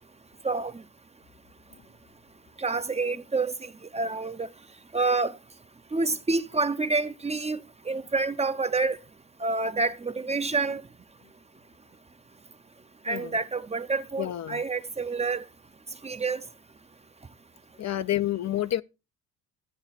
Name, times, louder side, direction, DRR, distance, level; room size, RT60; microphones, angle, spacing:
voice 1, 2.6-3.5 3.9-4.5 4.9-5.3 5.9-7.6 7.9-9.0 9.4-10.8 13.1-15.4 16.0-16.4, right 3 dB, 15° right, 0.6 m, -27 dB
voice 2, 13.1-13.4 14.2-14.6 17.8-18.8, left 13 dB, 45° left, 0.5 m, -29 dB
14.0 x 7.8 x 4.2 m
supercardioid pair, 75°, 37 cm